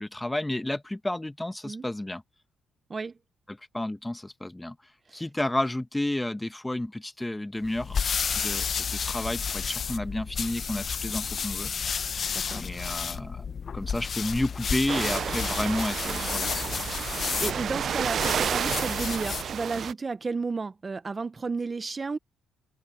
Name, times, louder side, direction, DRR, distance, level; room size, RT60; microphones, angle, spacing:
voice 1, 0.0-2.2 3.5-4.8 5.1-8.0 8.4-11.7 12.5-13.5 13.7-16.9, left 1 dB, 10° left, 1.3 m, -31 dB
sound 1, 7.6-19.5, left 6 dB, 45° left, 0.9 m, -32 dB
voice 2, 12.3-12.7 17.1-22.2, right 4 dB, 30° right, 1.0 m, -33 dB
sound 2, 14.9-19.9, right 8 dB, 55° right, 0.4 m, -30 dB
cardioid pair, 90°, 0 cm